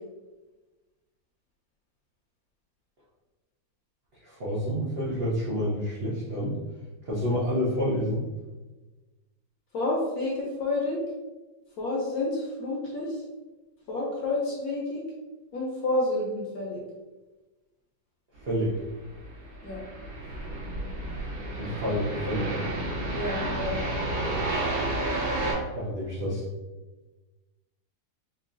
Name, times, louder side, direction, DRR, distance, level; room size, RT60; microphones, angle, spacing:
voice 1, 4.2-6.6 7.0-8.2 18.4-18.8 21.6-22.6 25.7-26.4, equal, 65° right, -8 dB, 0.6 m, -28 dB
voice 2, 9.7-11.0 11.8-13.2 13.9-15.0 15.5-16.8 19.6-19.8 23.1-23.8, left 2 dB, 65° left, -3 dB, 1.0 m, -29 dB
sound 1, 18.9-25.5, right 2 dB, 85° right, 2.1 m, -31 dB
4.5 x 2.3 x 2.5 m, 1.2 s
omnidirectional pair, 2.1 m